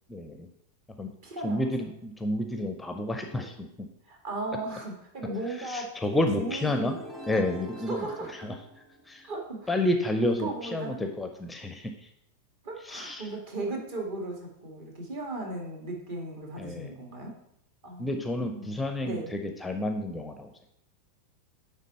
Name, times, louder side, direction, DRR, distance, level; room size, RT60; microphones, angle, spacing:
voice 1, 0.1-0.5 1.0-1.1 1.4-3.9 5.5-7.0 7.3-8.5 9.1-9.3 9.7-12.1 12.8-13.3 16.6-16.9 18.0-20.5, left 1 dB, 5° left, 5 dB, 0.6 m, -30 dB
voice 2, 1.2-1.7 4.1-6.0 6.4-6.9 7.9-8.3 9.2-9.7 10.2-11.0 12.6-17.3 17.8-18.6 19.0-19.3, right 2 dB, 50° right, 1 dB, 1.9 m, -36 dB
sound 1, 6.5-9.4, equal, 20° right, 1.3 m, -44 dB
9.2 x 3.7 x 4.2 m, 0.76 s
figure-of-eight pair, 90°, 0 cm